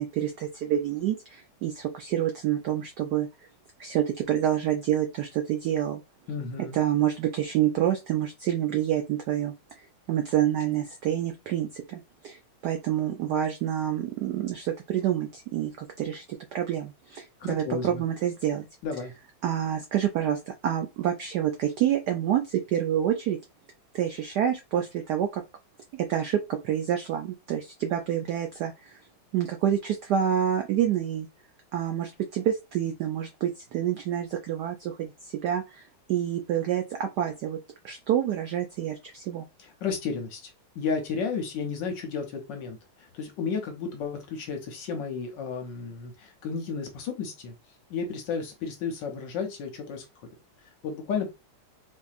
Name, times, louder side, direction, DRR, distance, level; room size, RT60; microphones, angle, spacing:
voice 1, 0.0-3.3 3.8-6.0 6.7-16.2 16.5-18.7 19.4-23.4 23.9-25.4 25.9-29.0 29.3-31.3 31.7-37.6 37.8-39.5, right 10 dB, 80° right, 5 dB, 0.9 m, -28 dB
voice 2, 6.3-6.8 17.4-18.0 18.8-19.1 39.6-47.5 47.9-50.1 50.8-51.3, left 5 dB, 65° left, 3 dB, 1.2 m, -33 dB
4.3 x 2.7 x 2.4 m, 0.25 s
omnidirectional pair, 2.4 m